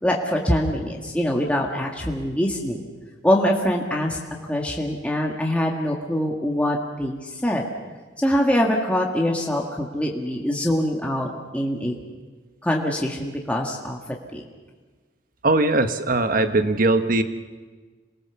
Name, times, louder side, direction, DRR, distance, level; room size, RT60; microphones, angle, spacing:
voice 1, 0.0-2.8 3.2-4.2 4.5-7.6 8.2-11.9 12.6-14.0 14.3-14.4, equal, 5° left, -1 dB, 1.7 m, -24 dB
voice 2, 15.4-17.2, right 2 dB, 50° right, 9 dB, 1.3 m, -20 dB
27.0 x 20.0 x 7.0 m, 1.4 s
head